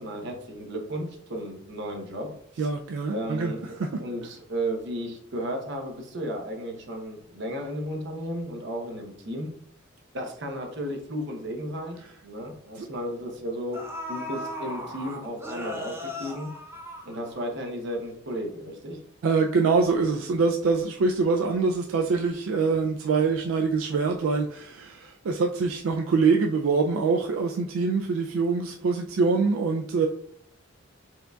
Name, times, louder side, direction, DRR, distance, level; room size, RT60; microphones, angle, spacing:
voice 1, 0.0-2.7 3.1-3.6 4.0-9.5 10.1-13.8 14.1-16.5 17.0-19.0, equal, 60° right, 2 dB, 0.9 m, -34 dB
voice 2, 2.6-3.9 12.8-12.9 19.2-30.1, right 4 dB, 85° right, 3 dB, 0.4 m, -24 dB
sound 1, 12.0-12.2 13.2-13.3 13.7-17.7 18.0-18.1, equal, 10° right, 0.7 m, -37 dB
4.5 x 3.8 x 2.3 m, 0.65 s
head